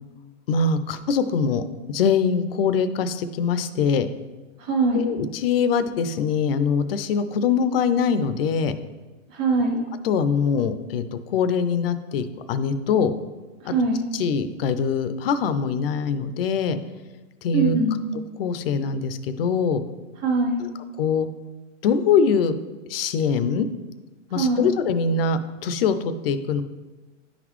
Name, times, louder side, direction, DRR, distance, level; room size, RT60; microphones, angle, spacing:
voice 1, 0.5-1.6 1.9-4.1 4.9-8.7 9.7-13.1 13.7-13.8 14.1-16.8 17.4-17.8 18.4-19.8 20.6-20.7 21.0-21.3 21.8-22.5 22.9-23.7 24.3-26.6, left 6 dB, 50° left, 11 dB, 0.5 m, -23 dB
voice 2, 4.6-5.1 9.3-9.8 13.6-14.0 17.5-18.1 20.2-20.7 24.3-24.7, right 2 dB, 15° right, -4 dB, 0.7 m, -22 dB
10.0 x 4.0 x 3.0 m, 1.2 s
supercardioid pair, 160°, 38 cm